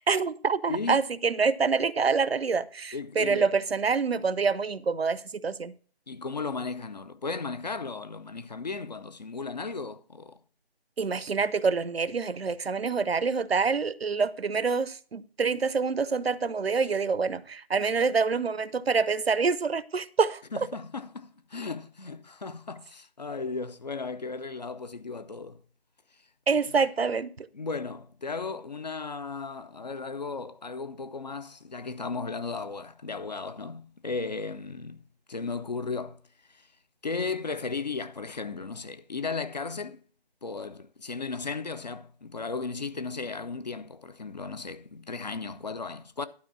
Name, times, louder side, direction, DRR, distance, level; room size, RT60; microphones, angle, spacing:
voice 1, 0.0-5.7 11.0-20.7 26.5-27.5, right 5 dB, 75° right, 0.7 m, -26 dB
voice 2, 0.7-1.0 2.9-3.5 6.1-10.4 20.5-25.6 27.5-35.0 35.3-36.2 36.5-36.7 37.0-40.0 40.4-46.3, left 4 dB, 45° left, 0.6 m, -35 dB
11.5 x 4.6 x 6.0 m
figure-of-eight pair, 155°, 31 cm